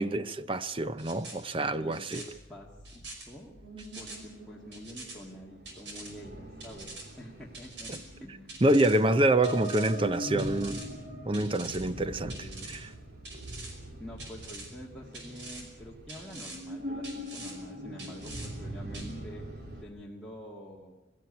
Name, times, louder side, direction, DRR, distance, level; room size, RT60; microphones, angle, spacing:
voice 1, 0.0-2.2 8.6-10.8 11.2-12.9, right 1 dB, 25° right, 0.6 m, -27 dB
sound 1, 1.0-1.4 1.9-2.2 2.8-3.3 3.8-4.2 4.7-5.2 5.7-6.1 6.6-7.0 7.5-8.0 8.5-9.0 9.4-9.9 10.4-10.9 11.3-11.8 12.3-12.8 13.2-13.7 14.2-14.7 15.1-15.6 16.1-16.6 17.0-17.5 18.0-18.5 18.9-19.1, right 2 dB, 70° right, 5.5 m, -44 dB
voice 2, 1.8-3.5 4.0-7.9 8.2-8.5 9.0-9.4 11.7-12.7 14.0-19.4 19.8-21.0, equal, 5° left, 1.9 m, -47 dB
sound 2, 2.3-19.8, equal, 55° right, 2.9 m, -42 dB
22.0 x 14.5 x 9.6 m
head